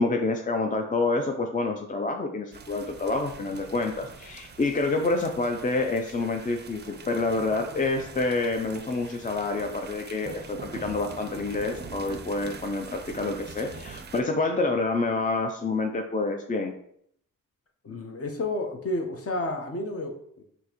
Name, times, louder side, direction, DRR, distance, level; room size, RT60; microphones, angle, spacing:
voice 1, 0.0-16.7, left 3 dB, 25° left, 4 dB, 0.4 m, -28 dB
sound 1, 2.5-14.2, right 4 dB, 30° right, 0.4 m, -44 dB
voice 2, 17.8-20.4, left 2 dB, 45° left, 4 dB, 0.9 m, -31 dB
6.1 x 2.7 x 2.9 m, 0.68 s
cardioid pair, 85°, 33 cm